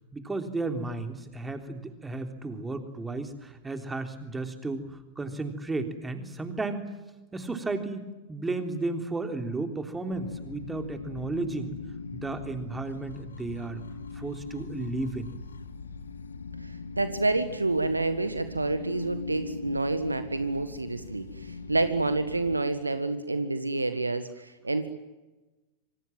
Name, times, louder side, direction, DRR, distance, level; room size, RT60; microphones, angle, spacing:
voice 1, 0.1-6.9 7.3-11.7 12.1-13.8 14.1-15.3, right 3 dB, 10° right, 6 dB, 3.5 m, -33 dB
sound 1, 10.1-22.6, left 4 dB, 70° left, 1.7 m, -40 dB
voice 2, 16.6-24.9, right 2 dB, 80° right, 10 dB, 1.6 m, -28 dB
27.0 x 25.5 x 7.6 m, 1.1 s
figure-of-eight pair, 90°, 0 cm